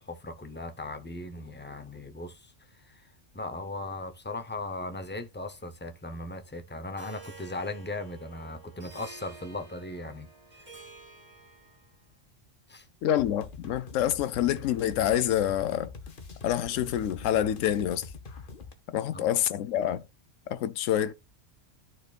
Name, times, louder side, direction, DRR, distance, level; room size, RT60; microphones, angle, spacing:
voice 1, 0.0-10.3 10.5-10.9 12.7-12.9 19.1-19.2, left 2 dB, 15° left, 0.4 m, -38 dB
Harp, 7.0-12.0, right 4 dB, 35° right, 2.6 m, -50 dB
voice 2, 13.0-15.9 16.4-18.1 18.9-20.0 20.5-21.1, left 11 dB, 85° left, 1.0 m, -27 dB
sound 1, 13.2-18.7, left 4 dB, 45° left, 1.1 m, -44 dB
12.5 x 4.4 x 2.3 m
omnidirectional pair, 1.3 m